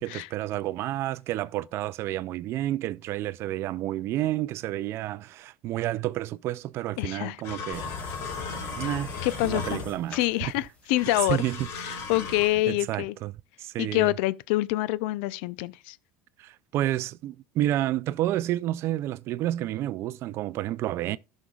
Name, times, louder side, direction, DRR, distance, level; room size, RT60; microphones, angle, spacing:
voice 1, 0.0-8.0 8.8-9.1 9.4-10.5 11.3-11.7 12.7-14.1 16.4-21.2, right 14 dB, 50° right, 0.4 m, -30 dB
voice 2, 7.0-7.4 9.2-9.8 10.1-11.4 11.8-13.1 13.8-16.0, left 17 dB, 75° left, 0.5 m, -26 dB
sound 1, 7.4-10.1 10.9-12.5, left 5 dB, 55° left, 2.1 m, -37 dB
sound 2, 7.7-12.7, left 4 dB, 25° left, 2.0 m, -41 dB
13.5 x 6.3 x 2.3 m
supercardioid pair, 130°, 6 cm